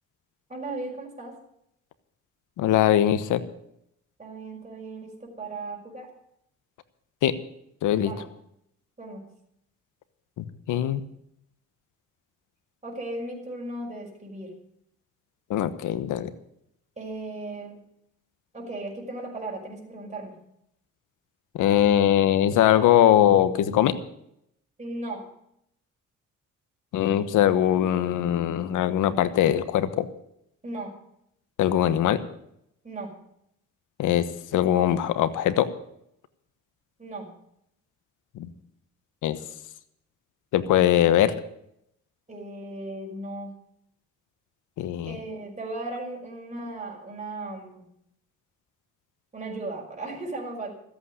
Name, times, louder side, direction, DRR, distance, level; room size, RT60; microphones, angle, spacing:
voice 1, 0.5-1.3 4.2-6.1 8.0-8.3 9.0-9.2 12.8-14.5 17.0-17.8 18.5-20.3 24.8-25.2 30.6-30.9 32.8-33.1 37.0-37.3 42.3-43.5 45.1-47.8 49.3-50.7, right 2 dB, 25° right, -1 dB, 5.7 m, -36 dB
voice 2, 2.6-3.4 7.2-7.3 7.8-8.1 10.4-11.0 15.5-16.3 21.6-23.9 26.9-30.1 31.6-32.2 34.0-34.2 34.5-35.7 38.3-38.5 39.2-39.4 40.5-41.3 44.8-45.2, left 11 dB, 85° left, 13 dB, 1.2 m, -21 dB
14.0 x 8.5 x 9.7 m, 0.75 s
cardioid pair, 90°, 30 cm